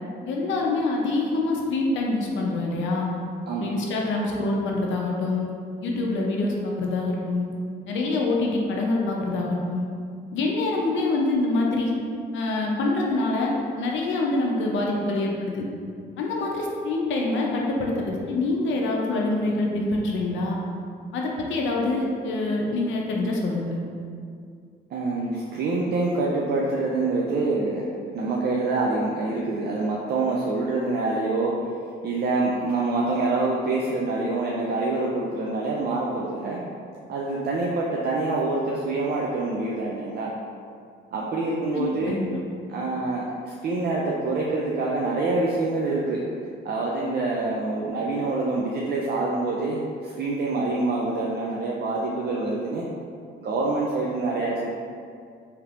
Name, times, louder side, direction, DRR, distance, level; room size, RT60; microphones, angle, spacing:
voice 1, 0.2-3.1 3.6-5.5 5.8-7.5 7.9-9.9 10.3-12.0 12.3-15.7 16.2-20.6 21.1-23.8 41.7-42.4, left 2 dB, 75° left, -1 dB, 0.6 m, -25 dB
voice 2, 3.5-3.8 24.9-27.9 28.1-31.5 32.0-36.6 37.1-40.3 41.1-42.2 42.7-46.2 46.6-52.9 53.4-54.7, right 3 dB, 55° right, -3 dB, 0.4 m, -26 dB
3.3 x 2.8 x 2.5 m, 2.3 s
cardioid pair, 90°, 20 cm